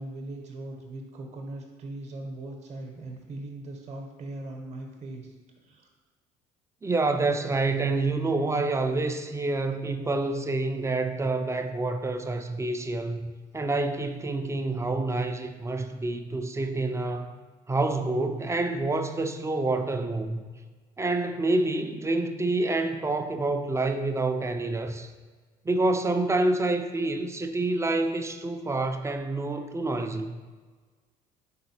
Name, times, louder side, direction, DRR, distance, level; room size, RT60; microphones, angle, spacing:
voice 1, 0.0-5.4 5.6-5.9 29.5-29.6, right 2 dB, 35° right, 0.8 m, -39 dB
voice 2, 6.8-17.3 17.7-20.5 21.0-25.1 25.6-30.4, right 2 dB, 15° right, 0.4 m, -27 dB
4.1 x 3.9 x 2.8 m
hypercardioid pair, 55°, 20 cm